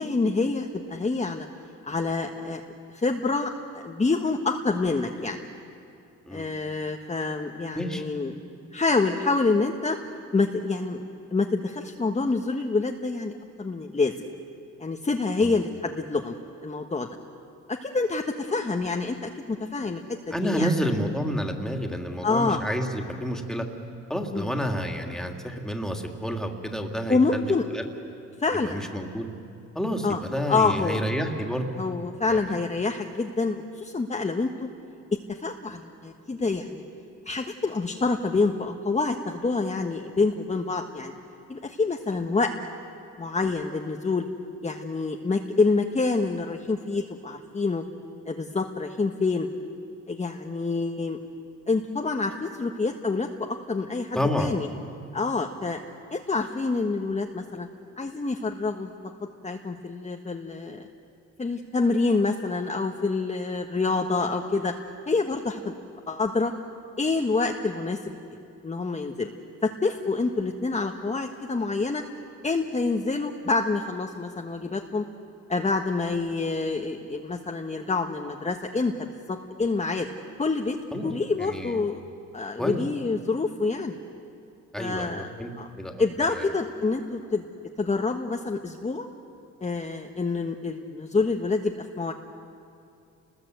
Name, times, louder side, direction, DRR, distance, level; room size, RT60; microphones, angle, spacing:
voice 1, 0.0-1.5 1.9-2.6 2.9-5.4 6.3-8.3 8.7-10.0 10.3-11.0 11.3-13.3 13.6-14.3 14.8-16.3 16.6-17.1 17.7-20.0 20.4-20.7 22.2-22.6 24.3-24.5 27.1-27.6 28.4-28.8 30.0-30.2 30.5-31.0 31.8-34.7 35.3-36.8 37.2-41.1 41.5-42.5 43.2-44.2 44.6-47.8 48.3-49.5 50.1-51.2 51.7-54.7 55.1-55.8 56.1-57.7 58.0-58.9 59.4-60.9 61.4-64.7 65.1-65.7 66.1-66.5 67.0-68.0 68.6-69.3 69.6-72.0 72.4-75.0 75.5-80.1 80.4-80.8 81.0-82.0 82.3-84.0 84.8-85.3 85.6-85.7 86.0-87.4 87.8-89.1 89.6-92.1, left 3 dB, 20° left, 2 dB, 1.5 m, -27 dB
voice 2, 6.3-6.6 7.7-8.0 15.4-15.5 20.3-23.7 24.1-27.8 28.5-29.3 29.7-31.7 32.3-32.5 54.1-54.5 80.9-81.1 81.4-81.8 82.6-82.8 84.7-85.5 85.8-86.0 86.4-86.5, equal, ahead, 3 dB, 2.9 m, -29 dB
29.5 x 20.5 x 8.1 m, 2.6 s
cardioid pair, 90°, 30 cm